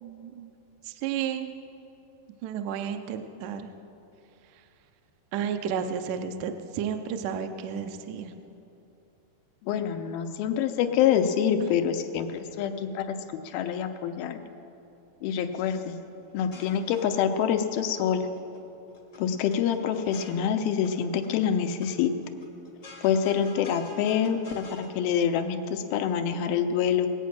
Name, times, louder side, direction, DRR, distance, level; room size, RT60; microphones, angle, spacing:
voice 1, 0.0-0.5 0.8-1.5 2.4-3.7 4.5-4.6 5.3-8.4 11.6-11.9, right 8 dB, 75° right, 7 dB, 1.9 m, -32 dB
voice 2, 9.6-13.2 13.4-14.4 15.2-16.0 16.3-18.3 19.2-22.1 23.0-27.1, left 8 dB, 90° left, 6 dB, 2.6 m, -26 dB
sound 1, 16.3-17.6 17.9-18.6 18.9-20.9 21.2-21.9 22.2-24.9, left 2 dB, 60° left, 0.8 m, -48 dB
20.0 x 8.4 x 6.0 m, 2.8 s
omnidirectional pair, 4.3 m